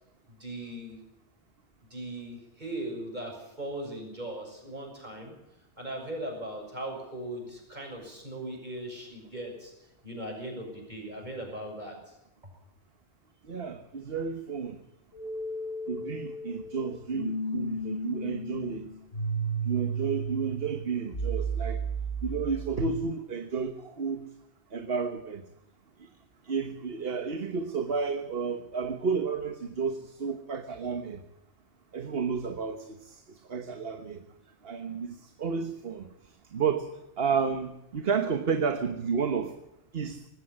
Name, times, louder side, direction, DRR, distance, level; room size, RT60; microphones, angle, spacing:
voice 1, 0.3-1.0 1.9-5.3 5.8-9.7 10.0-12.2, right 1 dB, 40° right, 1 dB, 6.9 m, -39 dB
voice 2, 13.5-14.8 15.9-18.9 19.6-21.8 22.2-24.2 24.7-25.4 26.4-31.2 31.9-34.2 34.6-36.1 36.5-36.9 37.2-39.5 39.9-40.2, right 5 dB, 60° right, 7 dB, 1.4 m, -31 dB
sound 1, 15.1-23.0, right 3 dB, 85° left, 3.3 m, -34 dB
19.0 x 16.0 x 8.7 m, 0.87 s
omnidirectional pair, 1.1 m